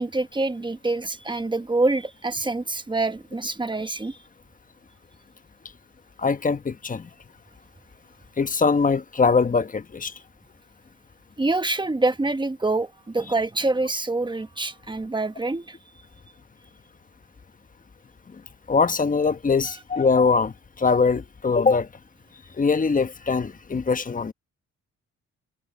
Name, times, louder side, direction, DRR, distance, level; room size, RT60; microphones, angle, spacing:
voice 1, 0.0-4.2 11.4-15.8, right 2 dB, 15° right, 1.2 m, -26 dB
voice 2, 6.2-7.1 8.4-10.1 18.7-21.9 22.6-24.3, left 4 dB, 25° left, 1.1 m, -22 dB
cardioid pair, 90°, 30 cm